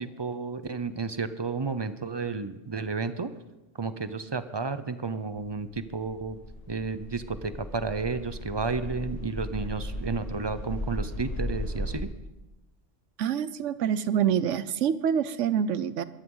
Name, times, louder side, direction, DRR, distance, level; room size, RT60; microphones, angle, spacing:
voice 1, 0.0-3.3 3.8-6.4 6.7-12.1, right 4 dB, 30° right, 12 dB, 0.6 m, -32 dB
sound 1, 5.4-12.0, left 1 dB, 30° left, 1.9 m, -36 dB
voice 2, 13.2-16.0, right 8 dB, 80° right, 15 dB, 1.0 m, -26 dB
22.0 x 14.0 x 3.9 m, 1.0 s
omnidirectional pair, 1.3 m